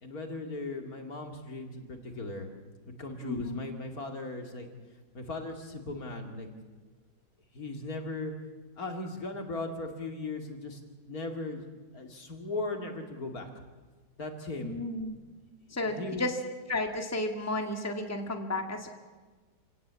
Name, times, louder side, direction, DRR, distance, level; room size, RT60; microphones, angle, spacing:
voice 1, 0.0-2.5 2.9-4.7 5.1-6.5 7.5-8.3 8.8-11.6 11.9-13.5 14.2-14.8 15.7-16.3, left 2 dB, 60° left, 4 dB, 2.9 m, -38 dB
voice 2, 3.2-3.6 14.6-15.2 15.7-16.3 16.7-18.9, left 2 dB, 10° left, 4 dB, 1.9 m, -33 dB
27.5 x 17.5 x 8.3 m, 1.3 s
omnidirectional pair, 1.8 m